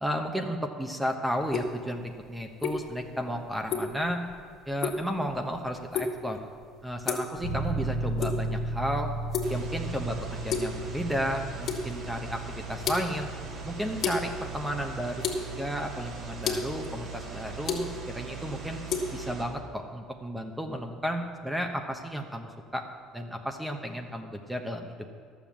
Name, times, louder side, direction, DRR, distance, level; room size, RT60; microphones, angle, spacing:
voice 1, 0.0-4.2 4.7-6.4 6.8-9.1 9.5-13.3 13.6-15.2 15.6-18.8 19.1-22.8 23.1-25.1, equal, 5° right, 4 dB, 1.0 m, -33 dB
sound 1, 1.4-19.0, left 5 dB, 55° left, 2.0 m, -35 dB
sound 2, 7.4-18.0, right 2 dB, 90° right, 2.2 m, -36 dB
sound 3, 9.4-19.4, right 5 dB, 65° right, 2.7 m, -40 dB
11.5 x 7.3 x 7.3 m, 2.1 s
supercardioid pair, 95°, 0 cm